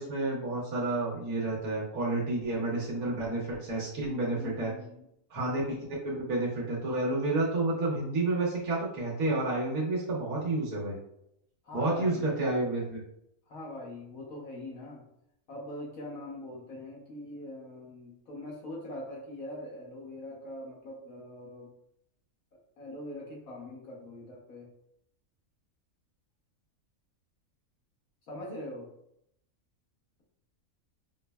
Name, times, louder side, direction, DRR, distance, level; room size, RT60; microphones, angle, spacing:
voice 1, 0.0-4.7 5.3-5.8 6.0-11.0 11.7-13.0, right 2 dB, 85° right, -5 dB, 1.3 m, -30 dB
voice 2, 4.3-5.1 11.6-12.3 13.5-15.0 15.5-21.7 22.8-24.7 28.3-28.9, left 1 dB, 80° left, -3 dB, 1.3 m, -42 dB
5.6 x 2.0 x 2.2 m, 0.77 s
omnidirectional pair, 1.5 m